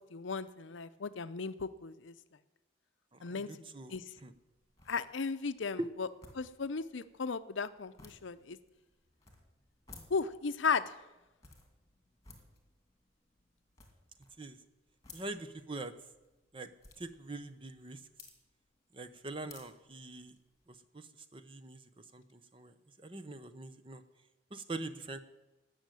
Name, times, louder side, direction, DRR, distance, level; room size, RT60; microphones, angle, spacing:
voice 1, 0.1-2.1 3.2-3.5 3.9-4.0 4.9-6.1 6.4-8.6 10.1-11.0, left 5 dB, 70° left, 13 dB, 0.6 m, -35 dB
voice 2, 3.1-4.3 5.8-5.9 14.4-14.6 15.1-15.9 16.5-16.7 17.0-18.1 18.9-20.4 20.7-24.0 24.5-25.2, right 2 dB, 25° right, 11 dB, 0.7 m, -44 dB
sound 1, 4.2-20.8, left 3 dB, 15° left, 2.2 m, -60 dB
17.0 x 6.5 x 9.0 m, 1.1 s
head